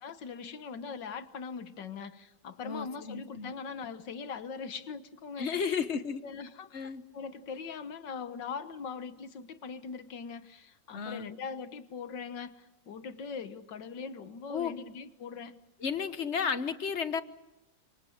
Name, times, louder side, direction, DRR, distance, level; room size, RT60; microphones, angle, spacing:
voice 1, 0.0-5.8 6.2-6.8 7.1-15.6, left 5 dB, 75° left, 11 dB, 2.0 m, -41 dB
voice 2, 2.6-3.5 5.4-6.2 6.7-7.0 10.9-11.3 14.5-14.7 15.8-17.2, left 6 dB, 45° left, 12 dB, 1.2 m, -33 dB
30.0 x 26.5 x 6.5 m, 0.96 s
omnidirectional pair, 2.0 m